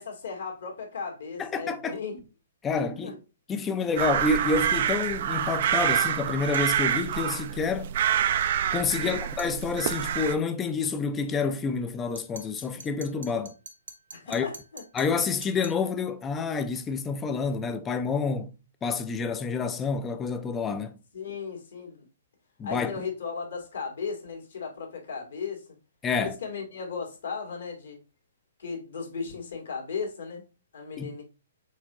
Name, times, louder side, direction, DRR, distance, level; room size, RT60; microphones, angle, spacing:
voice 1, 0.0-2.2 2.8-3.1 9.0-9.2 14.1-14.8 21.1-22.0 22.6-25.8 26.2-28.0 28.6-30.4 30.7-31.2, left 5 dB, 65° left, 1.7 m, -36 dB
voice 2, 1.4-2.0 2.6-3.2 3.5-7.9 8.7-13.5 14.3-14.5 14.9-18.5 18.8-20.9 22.6-22.9 26.0-26.4 31.0-31.2, left 4 dB, 15° left, 0.4 m, -28 dB
sound 1, 4.0-10.4, right 9 dB, 50° right, 0.3 m, -27 dB
sound 2, 6.5-6.8 9.4-9.6 12.2-15.9, right 4 dB, 70° right, 0.7 m, -46 dB
4.6 x 3.7 x 2.8 m
figure-of-eight pair, 120°, 0 cm